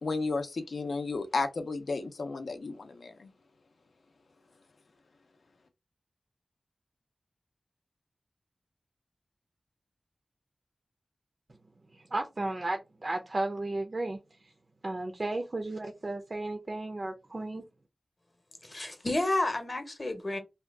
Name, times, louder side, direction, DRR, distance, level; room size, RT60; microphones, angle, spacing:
voice 1, 0.0-3.3, left 3 dB, 85° left, 0.5 m, -33 dB
voice 2, 11.9-14.2 14.8-17.7, right 2 dB, 45° right, 0.4 m, -34 dB
voice 3, 18.6-20.4, left 2 dB, 40° left, 0.7 m, -30 dB
2.7 x 2.3 x 3.3 m
wide cardioid pair, 85°, 0 cm